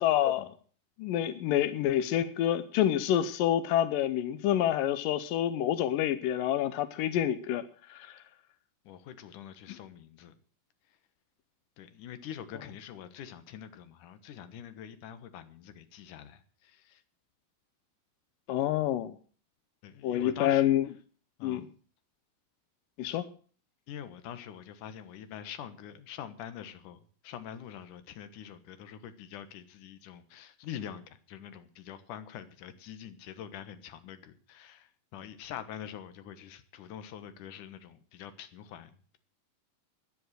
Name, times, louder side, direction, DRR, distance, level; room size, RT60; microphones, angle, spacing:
voice 1, 0.0-0.5 1.0-7.6 7.9-8.2 18.5-19.2 20.0-20.8 21.4-21.7 23.0-23.3, left 11 dB, 90° left, 12 dB, 2.6 m, -27 dB
voice 2, 8.8-10.3 11.8-17.0 19.8-20.7 21.4-21.6 23.9-39.2, left 9 dB, 70° left, 10 dB, 2.8 m, -45 dB
15.0 x 10.5 x 6.3 m, 0.43 s
omnidirectional pair, 3.8 m